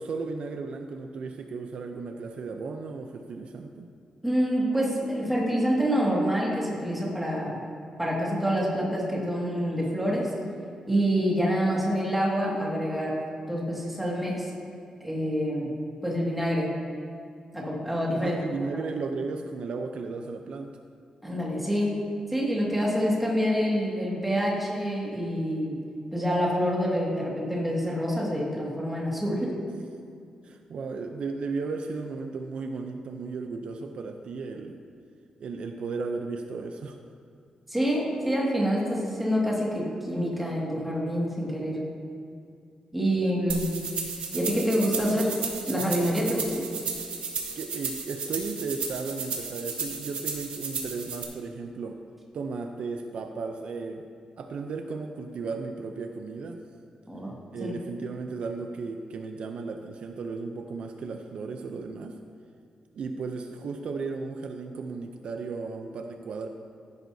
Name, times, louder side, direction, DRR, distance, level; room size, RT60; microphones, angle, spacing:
voice 1, 0.0-3.9 18.2-20.8 30.4-34.8 35.4-37.0 47.5-52.0 52.3-54.0 54.4-56.6 57.5-62.2 62.9-66.5, right 4 dB, 60° right, 5 dB, 0.5 m, -35 dB
voice 2, 4.2-7.5 8.0-10.3 10.9-13.2 13.5-14.5 15.0-15.7 16.0-16.7 17.5-18.4 21.2-22.0 22.3-25.8 26.1-29.5 37.7-41.8 42.9-43.7 44.3-45.4 45.7-46.6 57.1-57.7, equal, 5° right, -4 dB, 2.0 m, -27 dB
sound 1, 43.5-51.2, right 5 dB, 90° right, 1.7 m, -34 dB
15.0 x 10.5 x 2.7 m, 2.3 s
wide cardioid pair, 165°, 2 cm